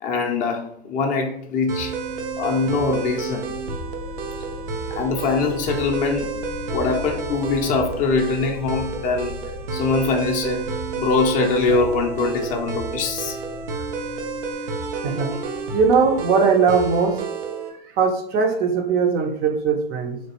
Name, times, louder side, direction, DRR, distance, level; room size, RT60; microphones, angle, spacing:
voice 1, 0.0-2.0 2.4-3.5 4.9-6.3 6.7-9.4 9.7-10.7 11.0-13.4, left 4 dB, 30° left, 2 dB, 0.4 m, -23 dB
sound 1, 1.7-17.7, right 4 dB, 70° right, 0.7 m, -31 dB
sound 2, 1.9-14.5, left 4 dB, 75° left, 0.5 m, -38 dB
voice 2, 15.7-17.2 18.0-20.2, right 5 dB, 30° right, 4 dB, 0.5 m, -19 dB
3.1 x 2.2 x 2.9 m, 0.70 s
hypercardioid pair, 105°, 30 cm